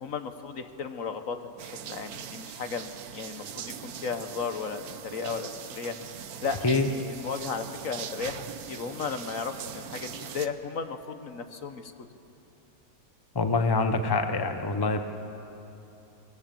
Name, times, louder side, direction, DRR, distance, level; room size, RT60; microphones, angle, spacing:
voice 1, 0.0-1.4 1.9-8.4 8.7-11.9, left 5 dB, 50° left, 8 dB, 1.2 m, -35 dB
sound 1, 1.6-10.5, right 8 dB, 60° right, 1.2 m, -41 dB
voice 2, 13.3-15.0, left 3 dB, 30° left, 7 dB, 0.4 m, -25 dB
24.0 x 19.5 x 7.6 m, 2.9 s
omnidirectional pair, 2.1 m